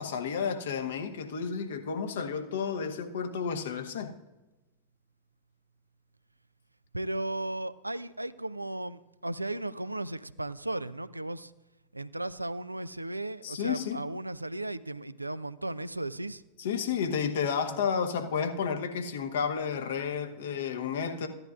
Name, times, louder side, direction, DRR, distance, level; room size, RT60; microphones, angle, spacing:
voice 1, 0.0-4.1 13.4-14.0 16.6-21.3, left 6 dB, 60° left, 6 dB, 1.0 m, -31 dB
voice 2, 6.9-11.5 11.9-16.4, right 2 dB, 85° right, 15 dB, 0.3 m, -35 dB
15.0 x 10.5 x 2.4 m, 1.1 s
figure-of-eight pair, 90°, 0 cm